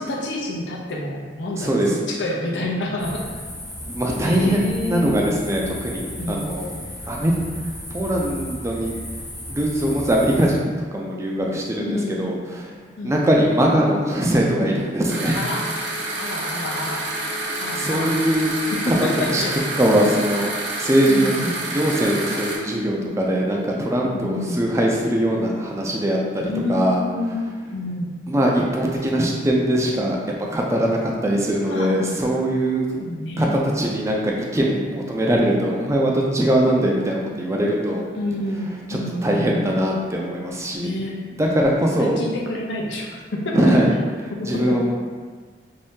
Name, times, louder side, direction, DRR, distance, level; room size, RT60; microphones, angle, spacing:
voice 1, 0.0-1.8 2.1-3.2 4.2-5.1 6.2-6.5 11.8-12.4 13.0-13.6 15.3-15.7 16.1-17.0 17.6-18.1 18.7-19.6 21.0-21.6 24.0-24.6 26.4-27.4 27.7-28.1 31.6-32.2 33.0-33.6 38.2-39.8 40.8-41.2 42.0-43.7 44.3-44.8, left 1 dB, 85° left, -2 dB, 0.6 m, -28 dB
voice 2, 1.6-1.9 3.9-6.7 7.1-7.4 7.9-8.9 9.5-12.4 13.0-15.4 17.7-18.5 18.9-19.0 19.3-19.4 19.8-20.5 20.8-21.3 21.7-27.0 28.3-30.2 30.5-32.9 33.4-38.0 38.9-40.9 41.4-42.2 43.5-43.9 44.4-44.9, right 1 dB, 15° right, -2 dB, 0.4 m, -21 dB
sound 1, 3.0-10.5, left 1 dB, 15° left, 0.7 m, -35 dB
sound 2, 15.1-22.6, right 1 dB, 70° right, 0.6 m, -28 dB
2.7 x 2.7 x 3.5 m, 1.5 s
head